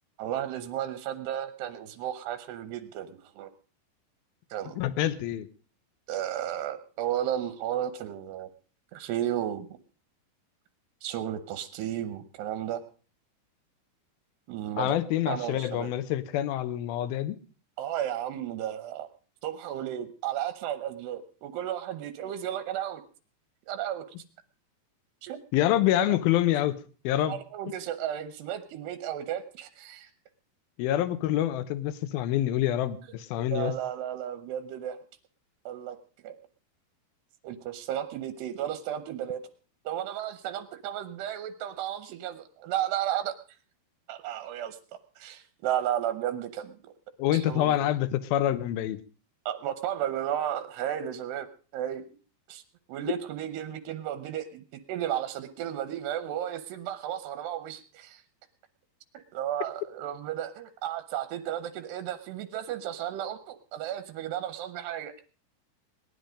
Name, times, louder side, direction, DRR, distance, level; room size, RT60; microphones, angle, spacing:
voice 1, 0.2-3.5 4.5-4.9 6.1-8.5 8.9-9.7 11.0-12.8 14.5-15.0 15.3-15.9 17.8-19.1 19.4-23.0 23.7-24.0 25.2-25.4 26.1-26.2 27.3-30.1 33.1-33.2 33.5-35.0 35.7-36.0 36.2-36.4 37.4-39.4 39.9-43.4 44.1-44.8 45.2-46.8 47.3-48.0 49.5-51.5 51.7-52.0 52.5-52.6 52.9-54.6 54.9-58.2 59.3-65.1, right 11 dB, 75° right, 10 dB, 2.8 m, -33 dB
voice 2, 4.8-5.5 14.8-17.4 25.5-26.8 27.0-27.4 30.8-33.7 47.2-49.0, left 13 dB, 75° left, 14 dB, 2.3 m, -26 dB
18.5 x 11.0 x 5.1 m, 0.39 s
omnidirectional pair, 5.2 m